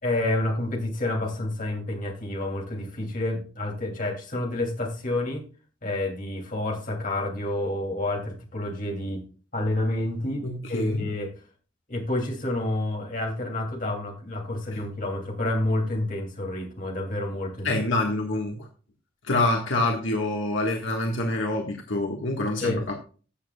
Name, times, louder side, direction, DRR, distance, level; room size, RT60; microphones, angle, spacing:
voice 1, 0.0-5.4 5.8-9.3 9.5-11.3 11.9-17.7 22.6-22.9, left 1 dB, 40° left, 1 dB, 2.8 m, -29 dB
voice 2, 10.4-11.1 14.7-14.8 17.6-18.7 19.2-22.9, left 2 dB, 70° left, 1 dB, 1.6 m, -26 dB
14.5 x 7.3 x 2.3 m, 0.37 s
head